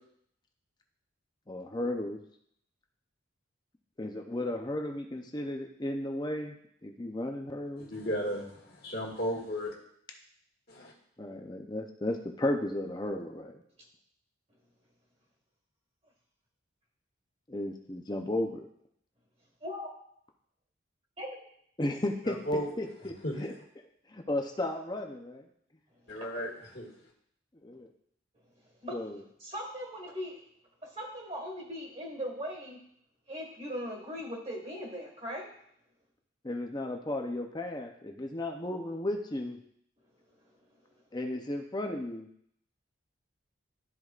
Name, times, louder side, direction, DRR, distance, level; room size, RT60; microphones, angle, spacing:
voice 1, 1.5-2.2 4.0-6.6 6.8-7.9 11.2-13.6 17.5-18.7 21.8-23.5 24.1-25.4 27.6-27.9 28.9-29.2 36.4-39.6 41.1-42.3, left 1 dB, 20° left, 3 dB, 0.6 m, -34 dB
voice 2, 7.8-9.7 10.7-10.9 22.3-22.7 23.0-23.4 26.1-26.9, equal, 50° left, -6 dB, 1.7 m, -34 dB
voice 3, 19.6-19.9 21.2-21.3 26.1-26.3 28.8-29.0 29.4-30.4 30.8-32.8 33.3-35.5, equal, 30° right, -1 dB, 1.9 m, -39 dB
12.5 x 4.7 x 2.4 m, 0.68 s
head